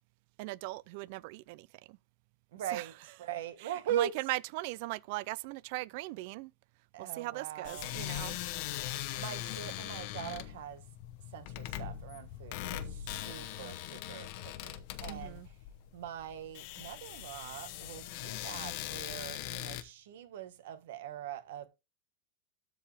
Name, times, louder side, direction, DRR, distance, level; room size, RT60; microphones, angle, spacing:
voice 1, 0.4-2.0 2.7-2.8 3.6-6.5 7.0-8.4 15.1-15.5, right 21 dB, 55° right, 0.4 m, -39 dB
voice 2, 2.5-4.1 6.9-8.0 8.8-10.8 11.3-15.5 15.9-21.7, right 10 dB, 75° right, 1.5 m, -41 dB
sound 1, 7.6-19.8, left 13 dB, 55° left, 0.9 m, -41 dB
13.0 x 4.6 x 3.4 m
supercardioid pair, 145°, 0 cm